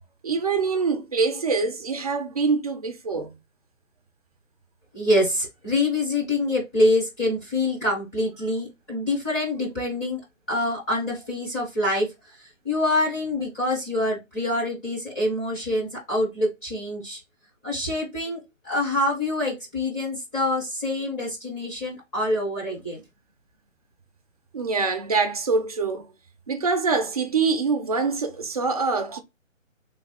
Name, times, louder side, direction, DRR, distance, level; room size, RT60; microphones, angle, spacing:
voice 1, 0.2-3.3 24.5-26.0 26.5-29.2, right 4 dB, 30° right, 0.4 m, -24 dB
voice 2, 4.9-10.2 10.5-12.1 12.6-17.2 17.6-23.0, left 1 dB, 15° left, 0.7 m, -25 dB
3.3 x 2.3 x 4.0 m
figure-of-eight pair, 145°, 39 cm